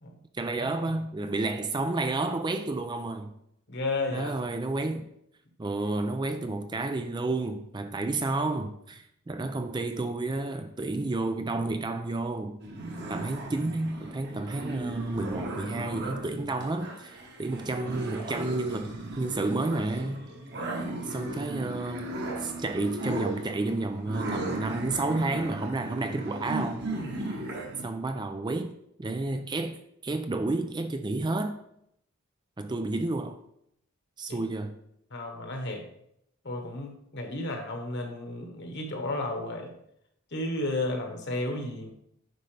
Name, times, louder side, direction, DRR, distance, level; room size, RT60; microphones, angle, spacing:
voice 1, 0.3-3.3 4.1-5.1 5.6-12.6 13.1-20.3 21.1-22.1 22.4-26.9 27.8-28.7 29.0-31.6 32.6-33.4 34.2-34.8, right 2 dB, 20° right, 0.4 m, -31 dB
voice 2, 3.7-4.3 34.3-34.4 35.1-35.8 36.4-39.7 40.3-41.9, left 2 dB, 50° left, 1.3 m, -33 dB
sound 1, 12.6-27.8, right 2 dB, 50° right, 1.3 m, -36 dB
9.3 x 5.6 x 3.3 m
head